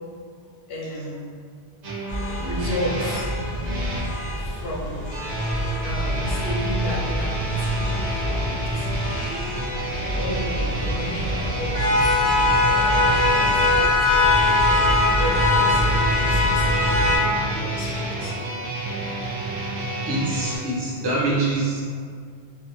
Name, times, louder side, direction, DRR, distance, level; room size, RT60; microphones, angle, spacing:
voice 1, 0.7-1.4 2.4-3.3 3.8-3.9 4.3-5.1 5.8-9.3 10.1-14.8 15.1-18.7, equal, 65° left, -3 dB, 0.8 m, -34 dB
sound 1, 1.8-4.1 5.1-20.6, right 2 dB, 75° right, 0.9 m, -29 dB
sound 2, 2.1-17.2, left 2 dB, 25° left, 0.5 m, -23 dB
voice 2, 20.1-21.8, right 2 dB, 30° right, -7 dB, 0.5 m, -24 dB
2.6 x 2.3 x 2.7 m, 2.1 s
omnidirectional pair, 1.1 m